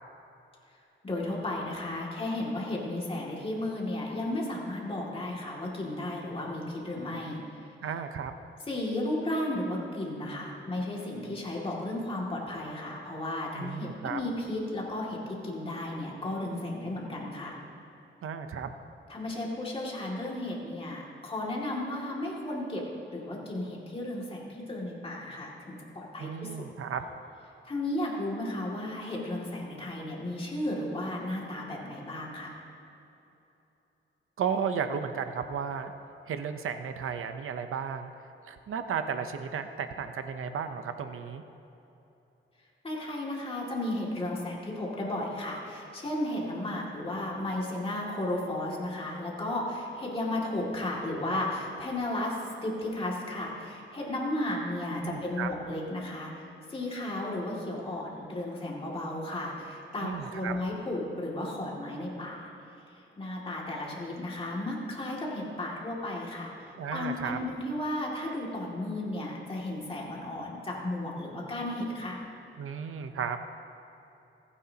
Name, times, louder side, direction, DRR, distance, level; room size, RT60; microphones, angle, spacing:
voice 1, 1.0-7.7 8.7-17.6 19.1-22.8 23.1-26.5 27.6-32.5 42.8-56.3 56.7-62.5 62.9-66.5 66.9-72.3, left 1 dB, 25° left, -4 dB, 2.3 m, -34 dB
voice 2, 7.8-8.3 13.6-14.2 18.2-18.7 26.2-27.0 34.4-35.9 36.3-38.1 38.5-41.4 55.0-55.5 60.0-60.5 66.8-67.4 72.6-73.4, right 7 dB, 80° right, 8 dB, 0.8 m, -34 dB
29.5 x 9.9 x 2.9 m, 2.9 s
wide cardioid pair, 165°, 21 cm